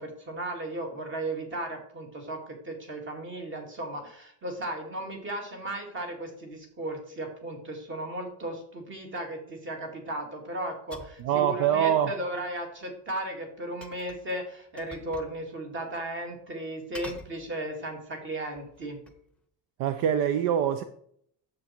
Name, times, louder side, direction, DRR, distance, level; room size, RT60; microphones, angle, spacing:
voice 1, 0.0-19.0, right 1 dB, 35° right, 2.5 m, -36 dB
sound 1, 10.9-11.3 13.8-14.3 14.8-15.4 15.7-15.8 16.9-17.9 18.5-19.3, left 2 dB, 5° left, 0.9 m, -47 dB
voice 2, 11.2-12.1 19.8-20.8, right 9 dB, 70° right, 0.8 m, -24 dB
9.5 x 7.5 x 4.5 m
cardioid pair, 145°, 35 cm